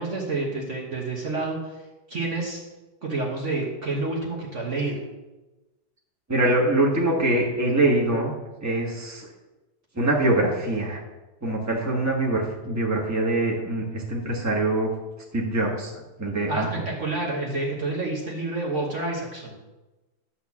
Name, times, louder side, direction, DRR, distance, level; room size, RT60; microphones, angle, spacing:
voice 1, 0.0-1.8 2.1-2.6 3.0-5.0 16.5-19.6, right 2 dB, 50° right, -2 dB, 1.5 m, -29 dB
voice 2, 6.3-8.3 8.6-9.3 9.9-11.0 11.4-14.9 15.3-15.9 16.2-16.7, right 2 dB, 10° right, -2 dB, 1.6 m, -23 dB
11.0 x 4.0 x 7.2 m, 1.1 s
omnidirectional pair, 1.8 m